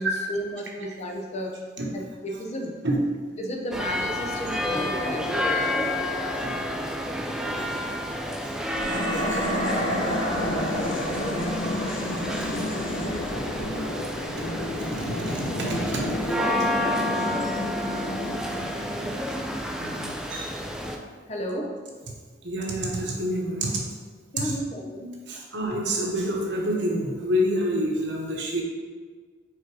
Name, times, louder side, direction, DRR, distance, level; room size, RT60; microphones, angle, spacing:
voice 1, 0.0-1.6 1.9-2.8 3.4-5.6 21.3-21.8 24.3-25.4, equal, 35° left, 1 dB, 0.7 m, -33 dB
sound 1, 3.7-21.0, left 1 dB, 5° right, 0.4 m, -30 dB
voice 2, 6.3-6.9 9.1-9.4 13.6-13.9 14.9-16.2 16.6-16.7 17.6-18.9 19.7-20.5 22.4-23.8 24.4-24.5 25.3-28.6, equal, 65° right, -1 dB, 1.1 m, -29 dB
sound 2, 8.7-20.1, left 1 dB, 90° left, 0.9 m, -31 dB
5.0 x 4.0 x 4.7 m, 1.6 s
head